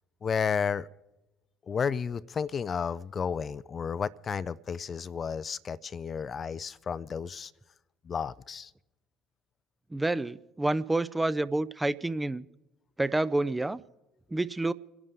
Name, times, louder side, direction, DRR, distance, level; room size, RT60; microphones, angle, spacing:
voice 1, 0.2-0.9 1.7-7.5 8.1-8.7, left 6 dB, 35° left, 17 dB, 0.4 m, -32 dB
voice 2, 9.9-12.4 13.0-13.8 14.3-14.7, right 2 dB, 15° right, 16 dB, 0.5 m, -28 dB
26.5 x 11.0 x 3.6 m, 1.0 s
hypercardioid pair, 60°, 0 cm